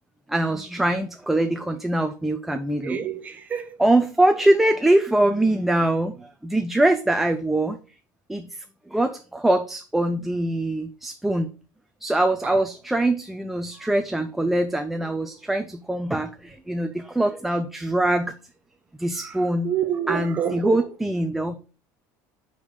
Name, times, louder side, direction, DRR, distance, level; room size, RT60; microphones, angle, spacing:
voice 1, 0.3-3.0 3.8-7.8 8.3-11.5 12.0-18.3 19.0-19.7 20.1-21.6, right 1 dB, 5° right, 0.3 m, -23 dB
voice 2, 2.8-3.8 12.4-12.6 13.7-13.9 19.1-21.0, right 8 dB, 20° right, 0.8 m, -29 dB
5.3 x 5.1 x 6.3 m
cardioid pair, 175°, 7 cm